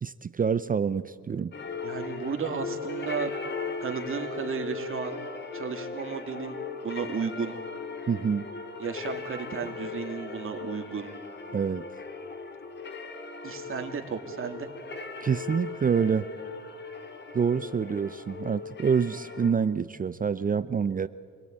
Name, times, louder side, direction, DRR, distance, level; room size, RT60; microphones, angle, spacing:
voice 1, 0.0-1.5 8.1-8.4 11.5-11.8 15.2-16.3 17.3-21.1, right 6 dB, 30° right, 15 dB, 0.5 m, -27 dB
sound 1, 1.5-19.5, left 4 dB, 35° left, 2.0 m, -38 dB
voice 2, 1.8-3.3 3.8-5.2 5.5-6.6 6.8-7.5 8.8-11.1 13.4-14.7, right 6 dB, 45° right, 4 dB, 2.6 m, -33 dB
25.5 x 17.5 x 8.8 m, 2.1 s
cardioid pair, 90°, 30 cm